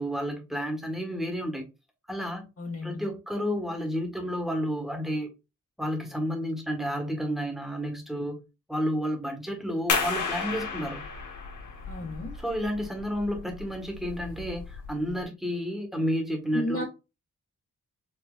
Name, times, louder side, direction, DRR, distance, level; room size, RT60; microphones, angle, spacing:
voice 1, 0.0-1.6 2.1-2.5 2.8-5.3 5.8-8.4 8.7-11.0 12.4-16.9, equal, ahead, 1.6 m, -31 dB
voice 2, 2.6-3.1 11.9-12.3 16.5-16.9, equal, 50° left, 1.8 m, -33 dB
sound 1, 9.9-15.2, left 4 dB, 90° left, 1.7 m, -33 dB
5.1 x 3.2 x 2.5 m
wide cardioid pair, 90°, 30 cm